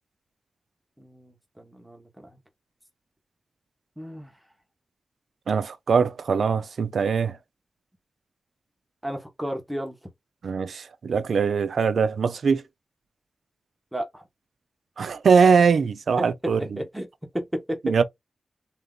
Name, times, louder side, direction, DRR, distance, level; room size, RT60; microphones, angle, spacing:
voice 1, 1.0-2.3 4.0-4.3 9.0-10.0 13.9-14.2 16.2-17.1 17.3-17.9, equal, 10° right, 1.3 m, -33 dB
voice 2, 5.5-7.4 10.4-12.6 15.0-16.8 17.8-18.0, right 5 dB, 85° right, 0.5 m, -22 dB
3.6 x 2.8 x 3.8 m
wide cardioid pair, 85°, 0 cm